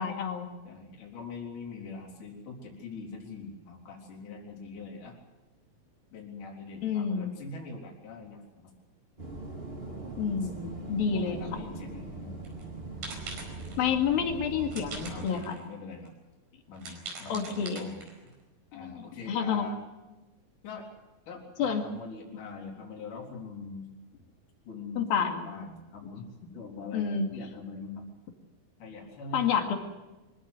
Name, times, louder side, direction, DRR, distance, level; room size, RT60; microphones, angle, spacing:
voice 1, 0.0-0.5 6.8-7.3 10.2-11.4 13.8-15.6 17.3-17.9 18.7-19.7 21.6-21.8 25.0-25.5 26.9-27.3 29.3-29.7, left 7 dB, 80° left, 3 dB, 4.1 m, -29 dB
voice 2, 0.6-5.2 6.1-8.7 10.4-10.5 11.1-12.3 15.1-16.1 16.7-18.1 18.7-19.8 20.6-20.9 21.3-23.8 24.1-24.2 24.7-28.1 28.8-29.8, left 4 dB, 60° left, -1 dB, 5.3 m, -43 dB
sound 1, 9.2-15.3, right 2 dB, 15° right, 3.1 m, -41 dB
sound 2, 12.4-12.6 13.0-13.9 14.7-15.6 16.1-16.2 16.8-18.3, right 3 dB, 75° right, 6.7 m, -42 dB
24.5 x 17.0 x 7.9 m, 1.1 s
omnidirectional pair, 4.2 m